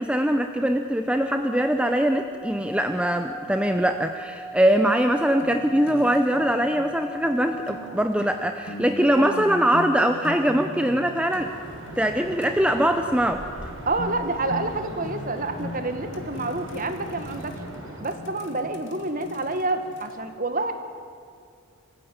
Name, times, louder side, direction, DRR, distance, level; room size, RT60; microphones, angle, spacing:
voice 1, 0.0-11.5 12.0-13.7, right 1 dB, 5° right, 6 dB, 0.7 m, -22 dB
Singing / Glass, 1.4-8.0, left 1 dB, 15° left, 6.0 m, -40 dB
sound 1, 5.4-20.1, left 1 dB, 55° left, 2.5 m, -40 dB
sound 2, 11.3-18.0, right 1 dB, 60° right, 6.6 m, -40 dB
voice 2, 13.8-17.5 18.0-20.8, right 2 dB, 40° right, 8 dB, 1.8 m, -28 dB
25.0 x 16.0 x 9.6 m, 2.4 s
head